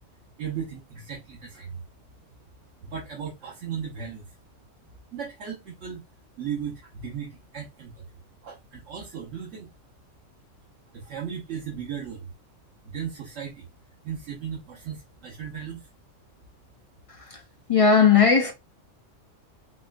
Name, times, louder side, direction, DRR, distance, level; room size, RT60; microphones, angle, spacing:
voice 1, 0.4-1.8 2.8-4.4 5.1-6.0 6.4-8.1 8.4-9.7 10.9-12.3 12.8-13.7 14.0-15.9, right 7 dB, 80° right, 1.2 m, -36 dB
voice 2, 17.7-18.5, left 6 dB, 60° left, 0.3 m, -17 dB
4.1 x 2.1 x 2.5 m
omnidirectional pair, 1.3 m